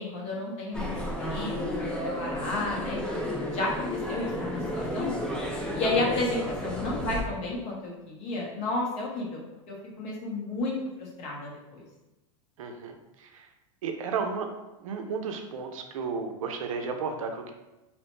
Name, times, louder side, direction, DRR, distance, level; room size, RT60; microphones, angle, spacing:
voice 1, 0.0-3.0 3.5-5.1 5.7-9.4 9.7-11.8, left 2 dB, 40° left, -3 dB, 0.9 m, -32 dB
sound 1, 0.7-7.2, equal, 5° left, 0.3 m, -32 dB
voice 2, 12.6-13.5 13.8-14.5 14.8-17.5, right 5 dB, 90° right, 5 dB, 0.4 m, -33 dB
2.8 x 2.0 x 3.0 m, 1.0 s
supercardioid pair, 125°, 17 cm